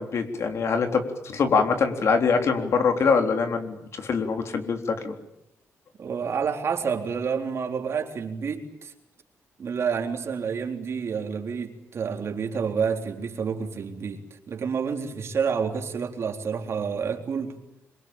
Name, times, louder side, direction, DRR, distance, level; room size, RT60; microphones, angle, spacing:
voice 1, 0.0-5.1, left 5 dB, 60° left, 6 dB, 3.7 m, -24 dB
voice 2, 6.0-8.9 9.6-17.6, right 6 dB, 60° right, 4 dB, 3.7 m, -29 dB
25.5 x 23.5 x 8.9 m, 0.82 s
cardioid pair, 100°, 5 cm